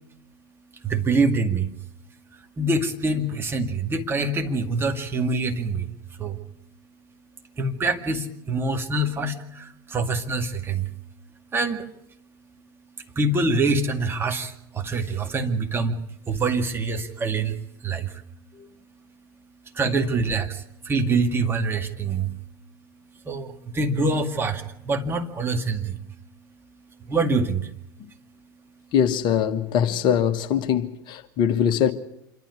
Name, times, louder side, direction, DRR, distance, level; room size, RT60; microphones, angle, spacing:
voice 1, 0.8-1.7 2.6-6.4 7.6-10.9 11.5-11.8 13.2-16.0 16.3-18.2 19.7-22.3 23.3-26.0 27.0-27.7, right 3 dB, 20° right, 2.1 m, -25 dB
voice 2, 28.9-31.9, left 8 dB, 40° left, 1.4 m, -22 dB
27.0 x 12.0 x 9.6 m
figure-of-eight pair, 80°, 11 cm